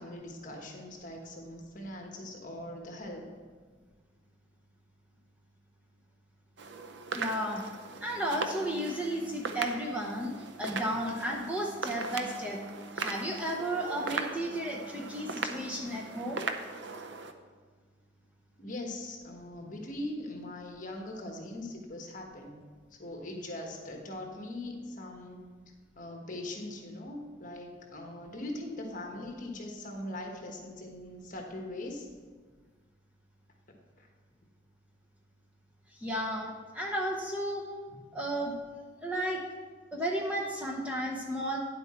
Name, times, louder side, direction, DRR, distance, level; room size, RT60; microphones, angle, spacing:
voice 1, 0.0-3.3 7.9-8.0 10.7-10.8 18.6-22.6 22.9-25.5 25.9-32.1 34.0-34.1 37.9-38.0, left 1 dB, 40° left, 2 dB, 1.3 m, -41 dB
sound 1, 6.6-17.3, right 4 dB, 65° right, 0.6 m, -39 dB
voice 2, 7.1-7.6 8.0-12.6 12.9-16.4 36.0-37.6 38.1-38.5 39.0-39.4 39.9-41.6, right 1 dB, 5° right, -2 dB, 0.8 m, -33 dB
9.7 x 7.8 x 4.4 m, 1.5 s
head